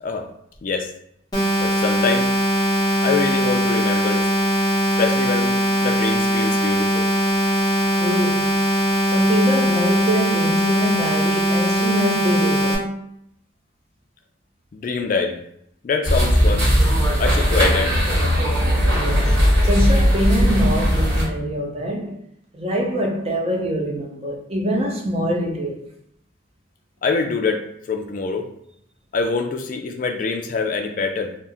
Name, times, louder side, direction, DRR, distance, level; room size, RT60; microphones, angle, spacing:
sound 1, 1.3-12.7, equal, 20° left, 0.8 m, -20 dB
voice 1, 1.6-2.3 3.0-4.3 5.0-7.1 14.7-15.4 15.8-16.7 17.2-18.0 27.0-28.5 29.1-31.4, left 4 dB, 45° left, 0.3 m, -24 dB
voice 2, 7.9-8.6 9.1-12.9 18.8-22.2 22.5-25.9, equal, 30° right, 0.5 m, -24 dB
sound 2, 16.0-21.2, equal, 85° right, 1.1 m, -18 dB
2.7 x 2.0 x 3.5 m
head